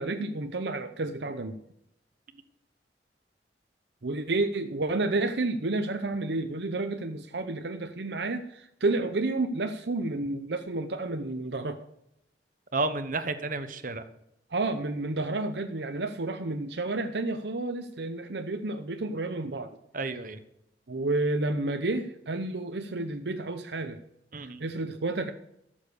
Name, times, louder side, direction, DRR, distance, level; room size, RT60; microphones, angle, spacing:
voice 1, 0.0-1.6 4.0-11.9 14.5-19.8 20.9-24.0 24.4-25.3, right 2 dB, 70° right, 7 dB, 0.8 m, -30 dB
voice 2, 12.7-14.0 19.9-20.4 24.3-24.6, right 3 dB, 50° right, 10 dB, 1.1 m, -31 dB
13.0 x 7.3 x 6.7 m, 0.79 s
head